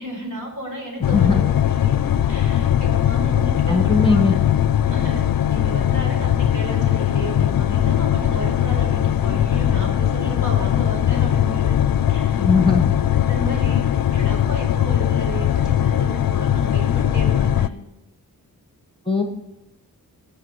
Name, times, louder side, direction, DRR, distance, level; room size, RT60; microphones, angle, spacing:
voice 1, 0.0-1.9 2.3-4.3 4.9-11.8 12.1-12.5 13.3-17.7, right 1 dB, 55° right, 0 dB, 4.8 m, -33 dB
sound 1, 1.0-17.7, left 10 dB, 70° left, 0.5 m, -20 dB
voice 2, 1.1-1.4 3.7-4.4 12.4-12.9 19.1-19.2, left 4 dB, 15° left, 4 dB, 1.0 m, -18 dB
19.5 x 7.0 x 4.7 m, 0.94 s
wide cardioid pair, 135°, 35 cm